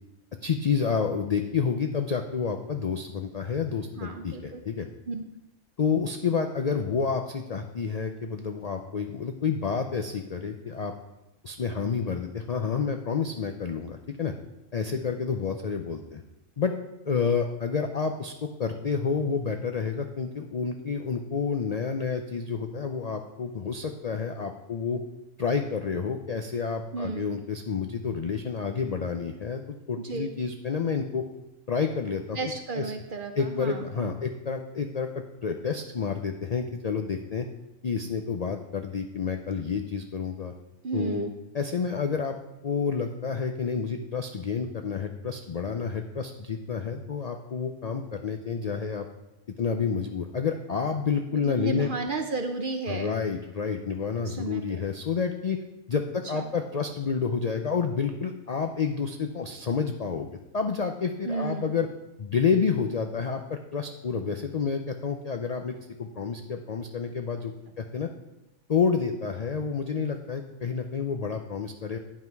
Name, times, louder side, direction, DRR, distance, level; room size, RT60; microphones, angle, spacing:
voice 1, 0.4-4.9 5.8-10.9 11.4-14.3 14.7-16.2 16.6-16.7 17.1-25.0 25.4-29.6 29.9-31.2 31.7-32.9 33.4-37.5 37.8-40.5 40.9-41.3 41.5-49.1 49.6-51.9 52.9-55.6 55.9-61.9 62.2-68.1 68.7-72.0, left 5 dB, 75° left, 5 dB, 0.3 m, -29 dB
voice 2, 4.0-4.6 5.1-5.3 26.9-27.4 30.0-30.3 32.3-34.1 40.8-41.3 51.3-53.1 54.2-54.8 56.3-56.4 61.2-61.7, right 3 dB, 55° right, 5 dB, 0.6 m, -33 dB
9.8 x 5.7 x 4.6 m, 0.93 s
omnidirectional pair, 1.4 m